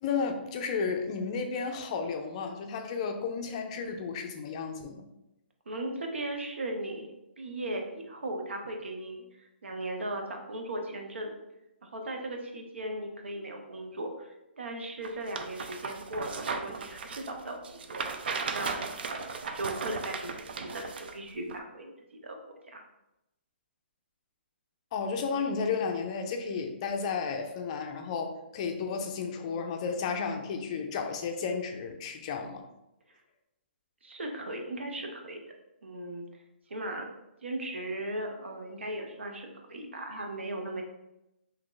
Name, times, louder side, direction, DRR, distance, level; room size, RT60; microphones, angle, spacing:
voice 1, 0.0-5.0 24.9-32.6, left 5 dB, 35° left, 5 dB, 0.4 m, -33 dB
voice 2, 5.7-9.2 9.6-11.3 11.8-18.0 18.5-22.8 34.0-35.4 35.8-36.3 36.7-37.1 37.4-40.8, right 1 dB, 85° right, 3 dB, 0.7 m, -37 dB
sound 1, 15.0-21.1 21.5-21.6, right 5 dB, 60° right, 0.4 m, -36 dB
2.8 x 2.4 x 3.7 m, 0.91 s
hypercardioid pair, 155°, 6 cm